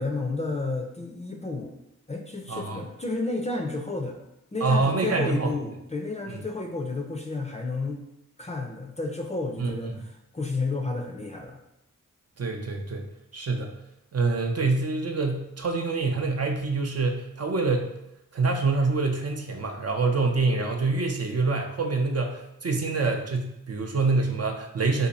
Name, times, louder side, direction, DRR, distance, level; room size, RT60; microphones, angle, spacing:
voice 1, 0.0-1.8 2.1-4.2 4.5-8.0 8.4-11.6, left 3 dB, 20° left, 2 dB, 0.5 m, -31 dB
voice 2, 2.5-2.9 4.6-5.5 6.3-6.4 9.6-10.0 12.4-13.1 13.3-13.8 14.1-17.9 18.3-25.1, right 3 dB, 45° right, 3 dB, 0.5 m, -26 dB
2.7 x 2.5 x 4.0 m, 0.85 s
cardioid pair, 50°, 34 cm